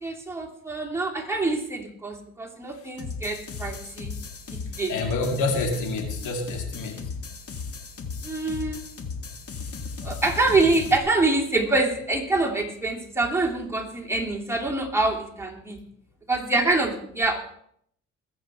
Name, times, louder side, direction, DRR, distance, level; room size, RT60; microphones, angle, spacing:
voice 1, 0.0-4.1 4.8-4.9 8.2-8.8 10.0-15.8 16.3-17.4, right 2 dB, 10° right, -1 dB, 3.1 m, -25 dB
sound 1, 3.0-11.0, left 4 dB, 50° left, 2.0 m, -36 dB
voice 2, 4.9-7.0, left 3 dB, 85° left, 4 dB, 2.6 m, -27 dB
21.5 x 8.0 x 4.6 m, 0.68 s
cardioid pair, 90°, 30 cm